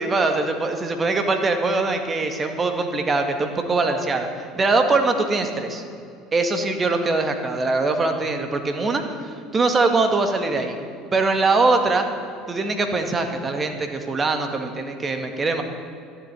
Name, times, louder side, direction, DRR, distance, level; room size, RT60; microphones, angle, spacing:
voice 1, 0.0-4.3 4.6-5.8 6.3-9.0 9.5-10.8 11.1-12.1 12.5-15.6, right 3 dB, 30° right, 6 dB, 1.9 m, -22 dB
12.0 x 7.8 x 9.9 m, 2.5 s
hypercardioid pair, 80°, 0 cm